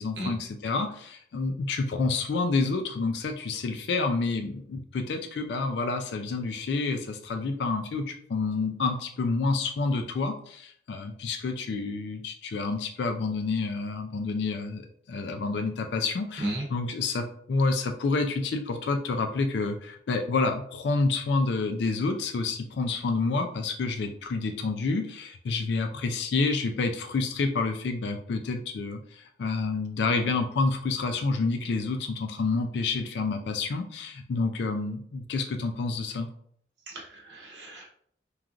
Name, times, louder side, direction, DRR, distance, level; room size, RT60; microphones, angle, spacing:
voice 1, 0.0-36.3, left 3 dB, 75° left, 5 dB, 0.3 m, -29 dB
voice 2, 36.9-37.9, right 1 dB, 85° right, -1 dB, 0.8 m, -34 dB
3.1 x 2.4 x 2.4 m, 0.63 s
head